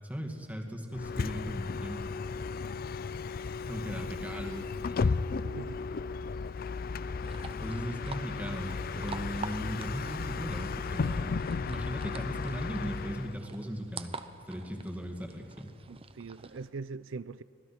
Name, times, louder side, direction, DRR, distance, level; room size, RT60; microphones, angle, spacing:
voice 1, 0.1-2.0 3.7-5.2 7.6-14.1 14.5-15.7, equal, 10° right, 2.2 m, -38 dB
Bus, 0.9-13.4, left 4 dB, 50° left, 0.4 m, -34 dB
voice 2, 5.4-5.8 7.7-7.8 15.9-17.4, right 4 dB, 90° right, 0.5 m, -42 dB
sound 1, 7.2-16.7, right 4 dB, 30° right, 0.8 m, -47 dB
25.5 x 19.0 x 5.9 m
head